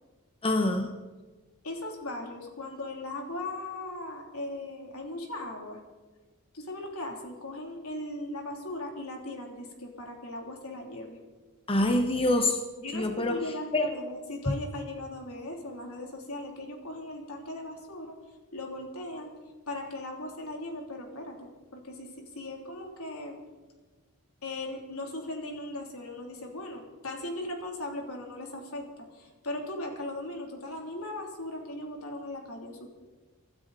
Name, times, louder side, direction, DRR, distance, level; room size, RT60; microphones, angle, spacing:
voice 1, 0.4-0.9 11.7-12.6 12.9-13.9 14.5-14.6, left 1 dB, 25° left, 5 dB, 1.0 m, -26 dB
voice 2, 1.6-5.8 6.5-11.2 12.8-18.2 18.5-19.3 19.7-23.4 24.4-28.9 29.1-32.9, left 2 dB, 70° left, 1 dB, 3.2 m, -38 dB
25.0 x 12.5 x 4.1 m, 1.3 s
head